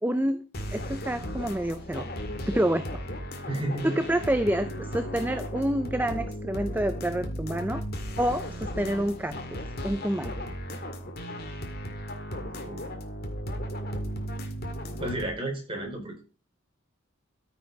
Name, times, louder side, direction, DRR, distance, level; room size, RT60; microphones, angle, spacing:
voice 1, 0.0-0.4 0.7-2.1 2.5-2.9 3.8-7.8 8.2-10.3, right 1 dB, 10° right, 10 dB, 0.5 m, -28 dB
sound 1, 0.5-15.3, equal, 50° left, 2.1 m, -35 dB
voice 2, 3.5-4.0 12.6-12.9 15.0-16.2, right 1 dB, 25° right, 1 dB, 4.4 m, -32 dB
13.5 x 5.9 x 5.3 m, 0.35 s
head